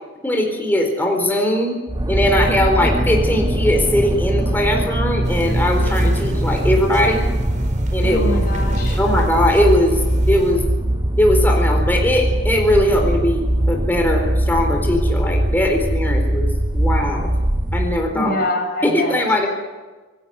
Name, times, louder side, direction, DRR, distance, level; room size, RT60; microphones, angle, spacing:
voice 1, 0.2-7.2 7.9-8.3 9.0-10.0 10.3-10.6 11.2-17.3 17.7-18.4 18.8-19.5, left 1 dB, 10° left, 1 dB, 4.2 m, -19 dB
sound 1, 1.9-18.1, right 1 dB, 20° right, 0.9 m, -20 dB
sound 2, 5.2-10.5, right 1 dB, 40° right, 5.1 m, -33 dB
voice 2, 8.0-9.0 17.0-17.2 18.1-19.2, left 1 dB, 50° left, 1 dB, 7.2 m, -25 dB
27.5 x 19.5 x 8.2 m, 1.3 s
head